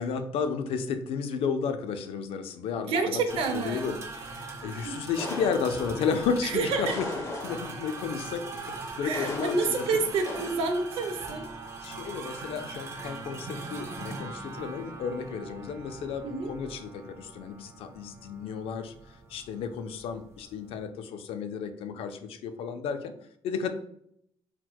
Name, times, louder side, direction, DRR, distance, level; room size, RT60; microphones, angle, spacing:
voice 1, 0.0-3.2 3.5-4.4 4.6-7.1 7.4-9.9 11.8-18.9 19.3-23.1 23.4-23.7, left 6 dB, 85° left, 8 dB, 0.4 m, -32 dB
voice 2, 2.9-3.9 4.8-5.0 6.4-7.0 9.0-11.5 16.2-16.5, right 4 dB, 80° right, 6 dB, 0.5 m, -28 dB
sound 1, 3.3-20.9, right 3 dB, 30° right, 0.4 m, -41 dB
sound 2, 5.2-6.1 6.9-7.9 9.1-9.9 10.3-10.6, left 3 dB, 30° left, 0.5 m, -37 dB
4.2 x 2.1 x 2.2 m, 0.69 s
cardioid pair, 165°, 9 cm